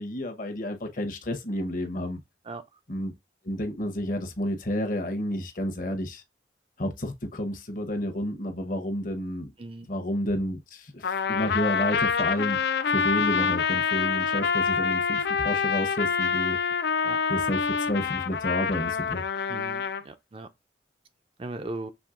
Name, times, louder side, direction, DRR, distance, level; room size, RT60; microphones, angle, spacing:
voice 1, 0.0-2.2 2.9-3.1 3.4-6.2 6.8-9.5 9.9-12.6 12.9-16.6 17.3-19.2, left 1 dB, 50° left, 0.9 m, -30 dB
Trumpet, 11.0-20.0, left 6 dB, 65° left, 0.4 m, -26 dB
voice 2, 19.5-20.5 21.4-21.9, right 2 dB, 30° right, 0.5 m, -38 dB
6.2 x 3.4 x 2.5 m
head